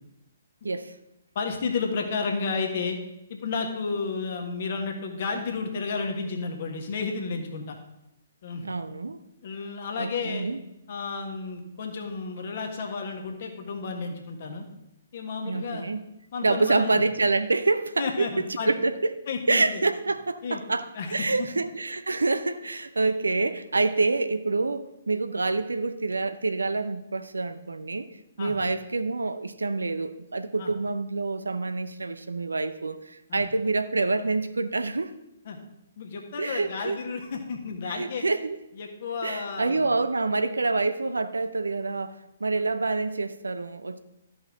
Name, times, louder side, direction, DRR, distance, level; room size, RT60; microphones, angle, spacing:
voice 1, 1.3-3.0 3.3-7.8 8.4-8.6 9.4-10.5 10.9-14.6 15.1-15.9 16.3-17.0 18.0-18.7 19.3-19.8 20.4-20.6 20.9-21.3 23.0-23.1 28.4-28.5 30.6-30.7 33.3-33.4 35.4-35.6 36.0-38.2 38.8-39.9, left 4 dB, 45° left, 3 dB, 1.5 m, -32 dB
voice 2, 8.6-9.2 10.0-10.6 15.4-16.0 16.4-18.3 18.7-19.1 19.5-28.1 28.4-35.1 36.4-37.0 37.9-38.6 39.2-44.0, right 3 dB, 70° right, 11 dB, 0.6 m, -27 dB
13.0 x 5.6 x 3.7 m, 0.87 s
figure-of-eight pair, 125°, 0 cm